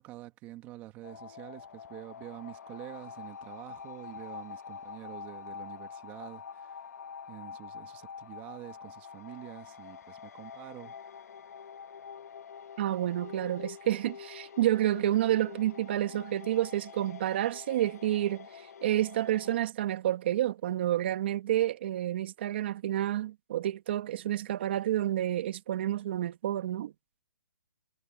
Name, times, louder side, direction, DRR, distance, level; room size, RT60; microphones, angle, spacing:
voice 1, 0.0-6.8 7.3-11.2, right 16 dB, 15° right, 1.7 m, -47 dB
sound 1, 1.0-19.6, left 7 dB, 60° left, 1.5 m, -46 dB
voice 2, 12.8-18.5 18.8-26.9, right 13 dB, 35° right, 1.7 m, -29 dB
hypercardioid pair, 170°, 10 cm